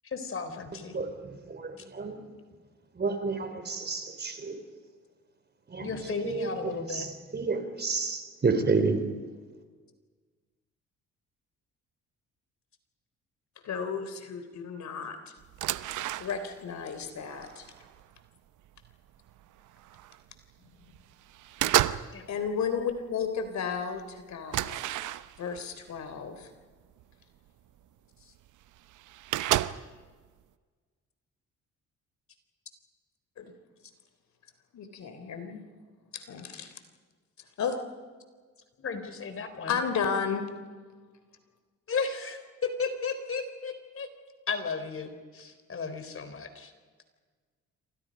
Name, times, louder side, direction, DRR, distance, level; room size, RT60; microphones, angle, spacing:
voice 1, 0.0-1.0 5.8-7.1 22.1-22.3 38.8-39.8 41.9-44.1 44.5-46.7, left 5 dB, 45° left, 8 dB, 4.0 m, -34 dB
voice 2, 0.9-2.3 2.9-4.6 5.7-9.1, right 4 dB, 35° right, 8 dB, 3.9 m, -30 dB
voice 3, 13.6-15.2 16.2-17.7 22.3-24.8 25.4-26.5 33.4-33.5 34.7-35.6 36.1-36.7 37.6-37.8 39.7-40.5, left 6 dB, 65° left, 8 dB, 3.4 m, -33 dB
sound 1, 15.4-16.7 17.0-18.2 18.8-18.9 19.3-20.2 20.6-21.0 21.3-22.2 22.5-23.0 23.4-23.5 23.8-23.9 24.5-25.6 26.4-26.5 27.0-27.1 28.2-28.3 28.5-28.6 28.8-30.0, right 14 dB, 80° right, 0.9 m, -31 dB
28.0 x 26.0 x 5.3 m, 1.5 s
cardioid pair, 90°, 30 cm